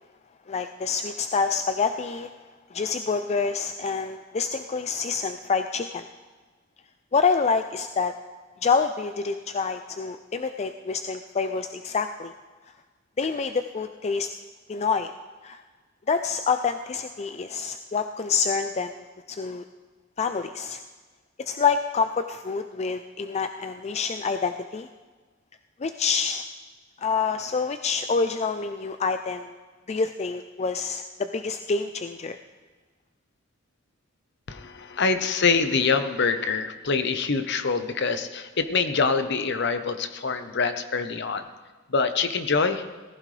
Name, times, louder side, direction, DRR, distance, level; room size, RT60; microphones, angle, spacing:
voice 1, 0.5-2.3 2.7-6.1 7.1-8.1 8.6-12.3 13.2-14.3 14.7-15.1 15.4-15.6 16.1-19.6 20.2-20.8 21.4-24.9 25.8-26.4 27.0-29.5 29.9-32.4, left 5 dB, 35° left, 8 dB, 0.4 m, -27 dB
voice 2, 34.5-41.4 41.9-42.8, left 4 dB, 60° left, 9 dB, 0.9 m, -25 dB
18.5 x 15.0 x 3.3 m, 1.3 s
head